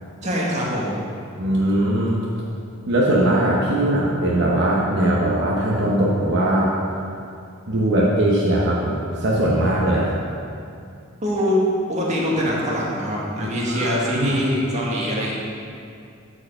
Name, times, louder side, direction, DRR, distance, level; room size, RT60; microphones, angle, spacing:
voice 1, 0.2-1.0 11.2-11.6 11.9-15.3, left 1 dB, 35° right, -4 dB, 1.7 m, -23 dB
voice 2, 1.4-2.2 2.9-6.7 7.7-10.1 13.7-14.4, right 1 dB, 60° right, -5 dB, 1.0 m, -20 dB
8.8 x 4.8 x 6.5 m, 2.4 s
head